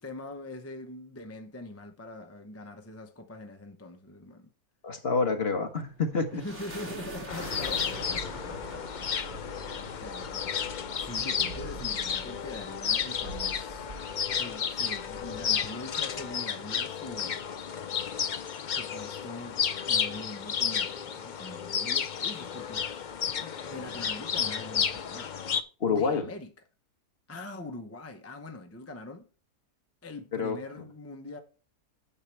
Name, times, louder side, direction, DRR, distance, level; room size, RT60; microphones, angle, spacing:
voice 1, 0.0-4.5 6.3-13.9 14.3-17.5 18.7-25.3 25.9-26.5 27.3-29.3 30.0-31.4, left 2 dB, 15° left, 0.6 m, -43 dB
voice 2, 4.8-6.4 25.8-26.2 30.3-30.6, left 4 dB, 45° left, 1.4 m, -27 dB
sound 1, 5.8-16.3, right 1 dB, 50° right, 3.1 m, -44 dB
sound 2, 7.3-25.6, left 7 dB, 70° left, 0.4 m, -32 dB
9.9 x 7.3 x 3.3 m
omnidirectional pair, 1.6 m